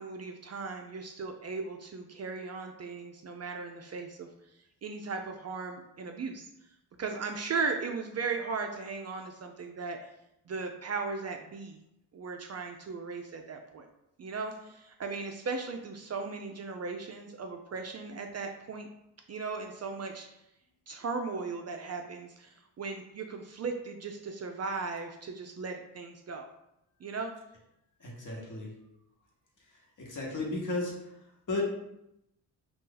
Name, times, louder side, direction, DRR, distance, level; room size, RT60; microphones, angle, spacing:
voice 1, 0.0-4.3 4.8-6.5 7.0-10.0 10.5-11.8 12.1-13.9 14.2-18.9 19.3-20.3 20.9-26.5 27.0-27.3, right 4 dB, 40° right, 3 dB, 0.4 m, -37 dB
voice 2, 28.0-28.7 30.0-30.9 31.5-31.6, left 2 dB, 45° left, -2 dB, 1.2 m, -34 dB
2.6 x 2.4 x 3.8 m, 0.83 s
cardioid pair, 60°, 42 cm